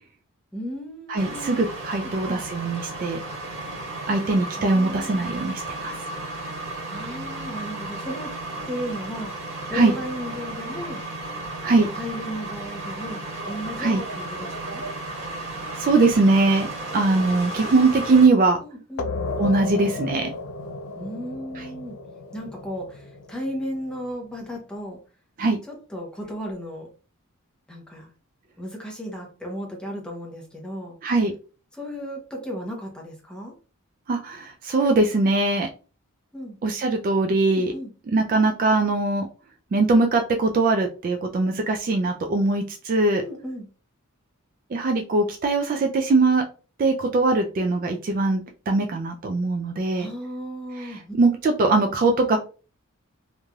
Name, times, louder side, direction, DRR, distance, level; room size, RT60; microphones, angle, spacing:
voice 1, 0.5-1.6 2.0-2.4 4.5-5.3 6.9-8.3 8.7-11.0 11.9-14.9 18.6-19.1 21.0-22.0 22.3-25.0 25.7-26.9 27.7-28.1 28.6-31.0 31.7-33.5 36.3-36.6 37.5-37.9 43.2-43.7 50.0-51.1, equal, 5° left, -1 dB, 0.7 m, -35 dB
voice 2, 1.1-3.2 4.1-5.9 9.7-9.9 11.6-11.9 13.8-14.0 15.8-16.7 16.9-18.6 19.4-20.3 21.6-21.7 25.4-25.6 31.0-31.3 34.1-35.7 36.6-37.7 38.1-39.3 39.7-43.2 44.7-46.4 46.8-50.1 51.2-52.4, right 3 dB, 40° right, 4 dB, 0.3 m, -21 dB
sound 1, 1.2-18.3, right 2 dB, 70° right, 1.3 m, -34 dB
sound 2, 19.0-24.3, left 3 dB, 65° left, 0.4 m, -34 dB
3.1 x 2.5 x 2.2 m, 0.35 s
head